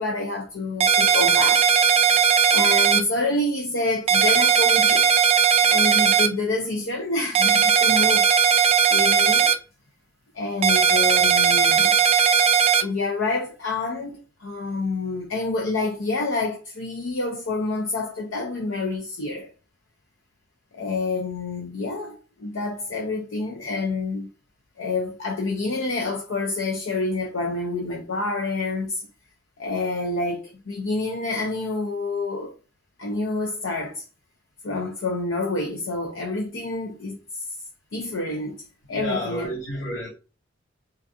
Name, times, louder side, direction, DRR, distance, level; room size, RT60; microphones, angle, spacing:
voice 1, 0.0-1.7 2.5-5.1 5.7-8.3 8.9-9.5 10.3-12.2 12.8-19.5 20.7-24.3 24.8-29.1 29.6-32.5 33.0-34.0 34.6-37.5 37.9-39.5, left 2 dB, 85° left, 0.6 m, -28 dB
sound 1, 0.8-3.0 4.1-6.3 7.3-9.5 10.6-12.8, right 7 dB, 30° right, 0.3 m, -18 dB
voice 2, 38.9-40.1, left 1 dB, 70° left, 1.7 m, -30 dB
3.8 x 2.6 x 2.3 m
head